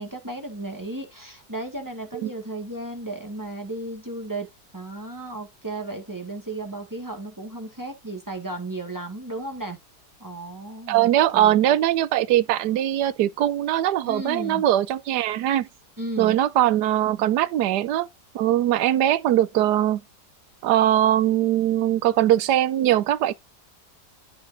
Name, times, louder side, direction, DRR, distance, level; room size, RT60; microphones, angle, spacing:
voice 1, 0.0-4.5 4.7-9.8 10.2-11.6 14.1-14.6 16.0-16.4, right 2 dB, 10° right, 1.8 m, -34 dB
voice 2, 10.9-15.7 16.2-18.1 18.3-20.0 20.6-23.3, right 12 dB, 80° right, 1.2 m, -21 dB
13.0 x 4.7 x 2.6 m
omnidirectional pair, 1.8 m